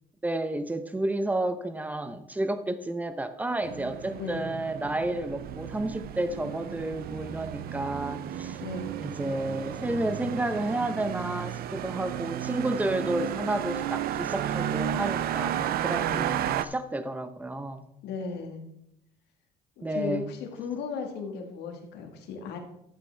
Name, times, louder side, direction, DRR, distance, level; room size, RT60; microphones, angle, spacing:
voice 1, 0.2-8.6 9.0-17.9 19.8-20.3, right 1 dB, 10° right, 10 dB, 0.8 m, -31 dB
sound 1, 3.6-16.7, right 11 dB, 65° right, 0.5 m, -33 dB
voice 2, 4.2-4.5 8.6-9.0 18.0-18.6 19.8-22.6, left 5 dB, 80° left, 3 dB, 1.7 m, -36 dB
11.5 x 8.3 x 3.4 m, 0.79 s
cardioid pair, 110°, 17 cm